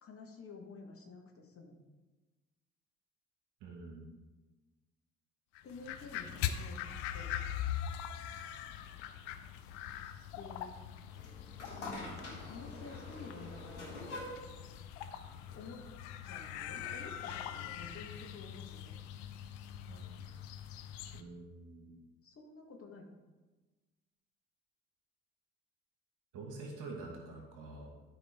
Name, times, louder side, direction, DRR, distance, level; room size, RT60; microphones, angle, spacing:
voice 1, 0.0-1.8 5.6-7.3 10.3-10.7 11.7-14.2 15.5-15.8 16.2-19.0 22.2-23.1, left 4 dB, 40° left, 1 dB, 1.6 m, -51 dB
voice 2, 3.6-4.1 19.8-20.2 21.1-21.9 26.3-27.9, right 3 dB, 60° right, 0 dB, 2.0 m, -47 dB
sound 1, 5.5-21.2, left 10 dB, 65° left, 0.6 m, -42 dB
sound 2, 11.1-16.4, left 1 dB, 85° left, 1.3 m, -47 dB
12.5 x 4.7 x 3.6 m, 1.2 s
figure-of-eight pair, 45°, 36 cm